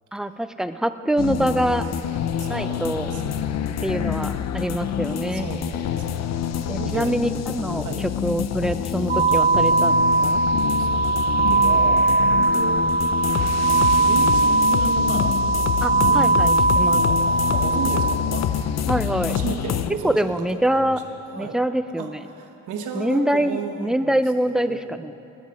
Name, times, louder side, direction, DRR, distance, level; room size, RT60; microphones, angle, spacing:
voice 1, 0.1-1.8 2.5-3.1 3.8-5.5 6.7-10.4 15.8-17.0 18.9-19.4 20.0-21.0 21.4-22.2 22.9-25.1, right 1 dB, ahead, 10 dB, 0.4 m, -25 dB
sound 1, 1.2-19.9, left 9 dB, 60° left, 0.6 m, -26 dB
voice 2, 2.4-4.3 5.3-6.4 6.8-7.1 7.7-8.1 10.8-12.9 13.6-15.4 15.7-16.5 17.0-17.2 17.5-18.5 19.3-20.9 21.3-21.6 22.0-24.2 24.7-25.0, right 6 dB, 80° right, 4 dB, 1.3 m, -34 dB
sound 2, 9.1-18.1, right 3 dB, 30° right, 0.8 m, -20 dB
19.5 x 7.6 x 5.0 m, 3.0 s
cardioid pair, 90°, 30 cm